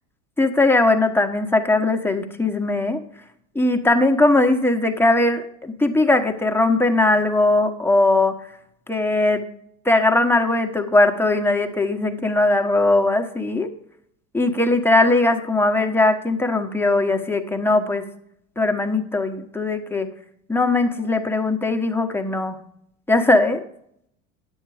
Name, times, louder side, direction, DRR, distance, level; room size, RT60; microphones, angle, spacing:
voice 1, 0.4-3.0 3.5-8.3 8.9-9.4 9.8-13.7 14.3-18.1 18.6-20.1 20.5-22.6 23.1-23.6, left 2 dB, 5° left, 4 dB, 1.1 m, -19 dB
10.0 x 8.1 x 4.9 m, 0.70 s
hypercardioid pair, 90°, 44 cm